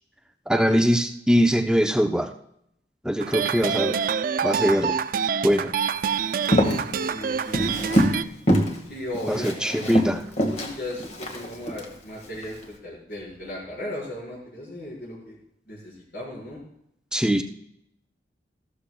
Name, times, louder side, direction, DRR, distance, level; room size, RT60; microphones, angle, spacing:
voice 1, 0.5-2.3 3.0-4.0 4.4-5.0 5.4-5.7 9.3-10.2 17.1-17.4, equal, 5° right, 6 dB, 0.6 m, -22 dB
sound 1, 3.2-8.2, right 7 dB, 50° right, 0.3 m, -26 dB
Walk footsteps, 6.3-8.2 8.5-8.8 9.1-11.8 12.4-12.6, equal, 35° left, 1.7 m, -24 dB
voice 2, 7.1-8.3 8.9-9.5 10.5-15.3 15.7-16.6, left 1 dB, 55° left, -6 dB, 4.8 m, -36 dB
14.0 x 13.0 x 2.3 m, 0.74 s
head